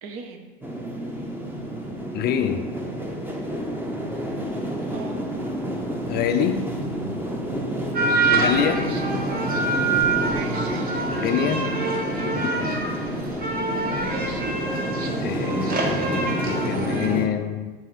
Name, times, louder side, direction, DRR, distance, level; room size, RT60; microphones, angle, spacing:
voice 1, 0.0-0.5 4.9-5.2 8.7-9.1 10.3-11.2 13.0-13.1 14.0-14.6 15.0-15.3, right 5 dB, 50° right, 5 dB, 0.9 m, -38 dB
sound 1, 0.6-17.3, equal, 5° right, 0.9 m, -29 dB
voice 2, 2.1-2.7 6.1-6.7 8.3-8.9 11.1-11.7 12.2-12.7 15.2-17.7, left 9 dB, 35° left, 8 dB, 0.4 m, -26 dB
sound 2, 7.9-17.1, right 3 dB, 30° right, 1.1 m, -26 dB
8.4 x 3.9 x 3.2 m, 1.3 s
hypercardioid pair, 85°, 29 cm